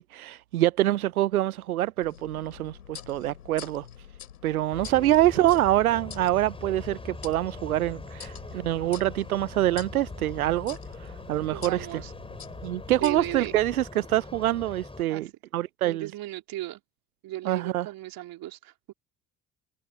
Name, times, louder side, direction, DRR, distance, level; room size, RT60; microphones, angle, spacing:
voice 1, 0.0-3.9 4.4-11.9 12.6-15.3 15.5-16.1 17.4-17.9, right 14 dB, 85° right, 0.5 m, -25 dB
sound 1, 2.0-13.6, left 9 dB, 85° left, 4.8 m, -46 dB
sound 2, 4.7-15.0, left 2 dB, 15° left, 5.7 m, -42 dB
voice 2, 4.9-5.3 11.5-12.1 13.0-13.6 15.1-15.3 15.8-16.8 17.2-18.9, right 15 dB, 55° right, 3.7 m, -36 dB
figure-of-eight pair, 60°, 42 cm